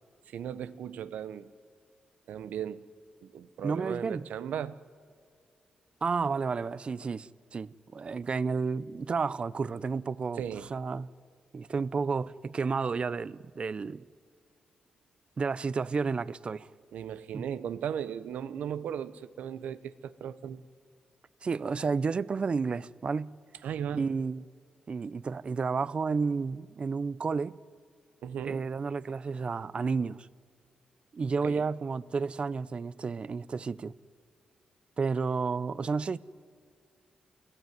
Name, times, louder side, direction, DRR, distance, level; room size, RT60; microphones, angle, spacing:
voice 1, 0.3-1.5 2.3-2.8 3.2-4.8 10.4-10.7 16.9-20.6 23.6-24.1 28.2-28.7 31.4-31.6, right 9 dB, 85° right, 0.9 m, -37 dB
voice 2, 3.6-4.3 6.0-10.4 10.7-11.1 11.5-14.0 15.4-16.7 17.3-17.5 21.4-23.4 23.9-24.4 24.9-27.6 28.4-30.3 31.1-34.0 35.0-36.2, right 5 dB, 45° right, 0.6 m, -31 dB
28.5 x 17.5 x 9.4 m
cardioid pair, 85°, 3 cm